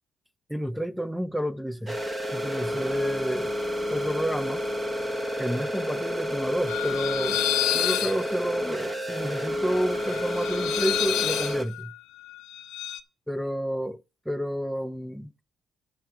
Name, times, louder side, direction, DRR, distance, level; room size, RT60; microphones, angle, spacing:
voice 1, 0.5-2.0 2.3-3.6 3.9-4.6 5.4-7.4 7.7-11.9 13.3-15.3, equal, ahead, 0.8 m, -30 dB
sound 1, 1.9-11.6, equal, 25° right, 1.5 m, -30 dB
Background for a Teaser Trailer, 6.7-13.0, left 13 dB, 90° left, 0.8 m, -30 dB
10.5 x 7.5 x 4.9 m
cardioid pair, 90°, 0 cm